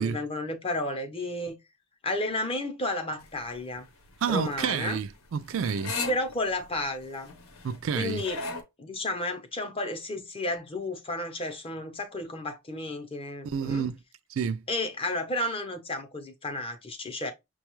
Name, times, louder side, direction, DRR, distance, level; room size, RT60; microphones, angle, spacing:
voice 1, 0.0-1.6 2.0-3.9 4.3-5.0 6.1-7.3 7.9-8.4 8.8-13.8 14.7-17.3, left 2 dB, 25° left, 0.7 m, -32 dB
sound 1, 3.2-8.6, left 3 dB, 80° left, 0.9 m, -38 dB
voice 2, 4.2-6.0 7.6-8.2 13.4-14.0 14.3-14.6, right 6 dB, 65° right, 0.3 m, -29 dB
6.1 x 2.3 x 3.0 m
head